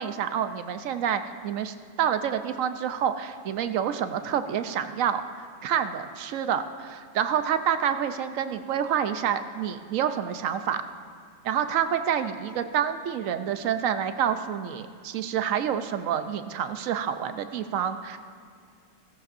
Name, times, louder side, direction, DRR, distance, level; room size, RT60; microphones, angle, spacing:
voice 1, 0.0-10.8 11.4-18.2, right 8 dB, 85° right, 9 dB, 1.0 m, -28 dB
16.5 x 14.0 x 2.5 m, 2.2 s
omnidirectional pair, 1.3 m